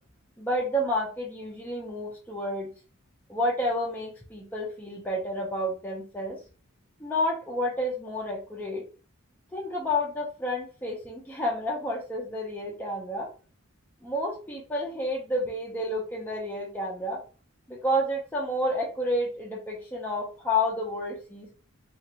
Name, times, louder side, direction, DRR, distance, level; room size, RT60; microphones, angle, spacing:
voice 1, 0.4-2.7 3.3-6.4 7.0-8.8 9.5-13.3 14.0-17.2 17.7-21.6, left 1 dB, 10° left, -2 dB, 0.5 m, -30 dB
2.5 x 2.4 x 3.0 m, 0.36 s
head